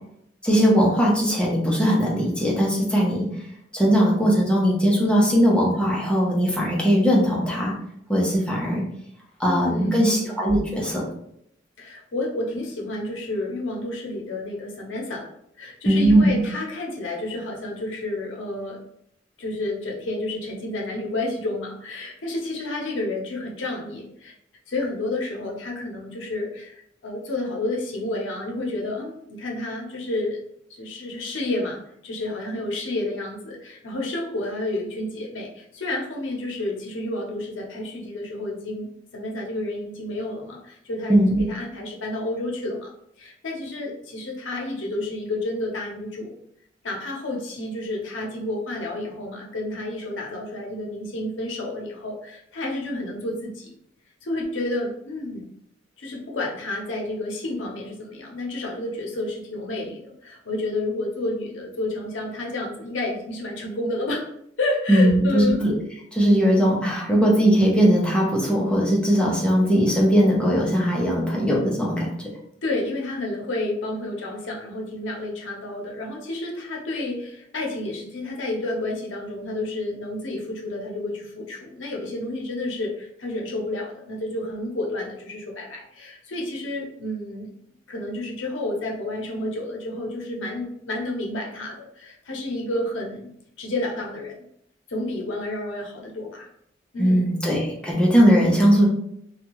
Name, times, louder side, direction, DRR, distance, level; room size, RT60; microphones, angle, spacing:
voice 1, 0.4-3.3 3.7-7.7 8.1-8.8 9.4-11.0 15.9-16.4 41.1-41.4 64.9-65.7 66.1-72.1 97.0-98.9, equal, 5° left, -4 dB, 0.7 m, -19 dB
voice 2, 9.4-10.4 11.8-15.3 15.6-18.8 19.4-24.3 24.7-30.4 30.7-41.2 41.5-42.9 43.2-46.3 46.8-53.7 54.2-55.5 56.0-64.2 64.6-65.6 72.6-87.5 87.9-93.3 93.6-94.4 94.9-96.5 96.9-97.3, left 2 dB, 85° left, 0 dB, 0.7 m, -30 dB
2.6 x 2.3 x 2.9 m, 0.73 s
head